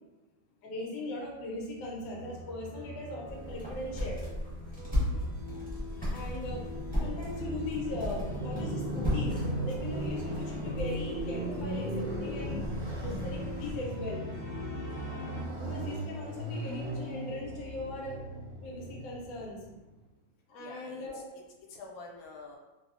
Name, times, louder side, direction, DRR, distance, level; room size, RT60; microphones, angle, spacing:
voice 1, 0.6-4.2 6.1-6.7 7.0-12.6 13.0-14.2 15.6-18.2 18.6-19.6 20.5-21.2, left 2 dB, 70° left, -2 dB, 0.9 m, -39 dB
Motorcycle, 1.6-19.8, right 1 dB, 65° right, 1.3 m, -38 dB
sound 1, 2.0-15.4, left 3 dB, 40° left, 0.6 m, -45 dB
sound 2, 3.2-13.8, left 1 dB, 10° right, 0.5 m, -36 dB
voice 2, 5.0-5.3 20.6-22.6, left 3 dB, 85° left, -1 dB, 1.4 m, -49 dB
3.2 x 2.0 x 2.4 m, 1.1 s
omnidirectional pair, 2.2 m